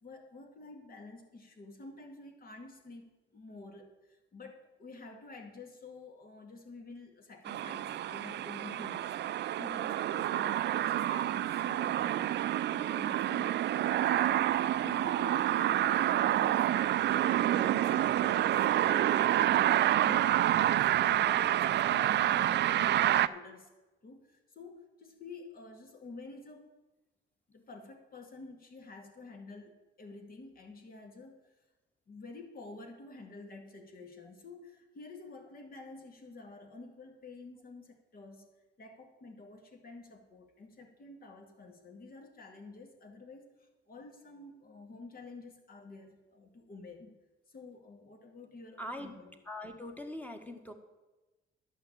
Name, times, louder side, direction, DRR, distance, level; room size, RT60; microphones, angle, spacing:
voice 1, 0.0-12.3 12.7-14.5 14.8-16.7 17.4-23.7 24.0-26.7 27.5-31.6 32.1-38.5 38.8-43.5 43.9-47.1 47.5-49.4, left 3 dB, 45° left, 4 dB, 2.2 m, -49 dB
sound 1, 7.5-23.3, right 12 dB, 60° right, 0.4 m, -28 dB
voice 2, 48.8-49.1 49.5-50.7, left 1 dB, 10° left, 5 dB, 1.5 m, -42 dB
11.5 x 5.7 x 8.8 m, 1.1 s
cardioid pair, 90°, 20 cm